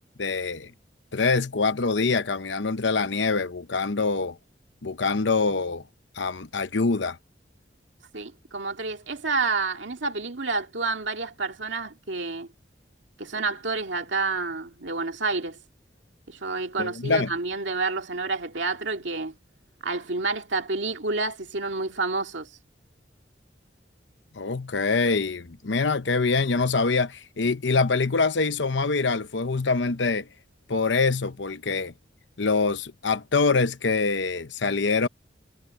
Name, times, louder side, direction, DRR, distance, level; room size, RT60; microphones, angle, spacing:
voice 1, 0.2-0.7 1.1-4.4 4.8-5.8 6.2-7.2 16.8-17.3 24.3-30.3 30.7-31.9 32.4-35.1, left 4 dB, 85° left, 0.9 m, -24 dB
voice 2, 8.1-12.5 13.2-15.6 16.3-19.3 19.8-22.5, right 3 dB, 90° right, 2.1 m, -29 dB
head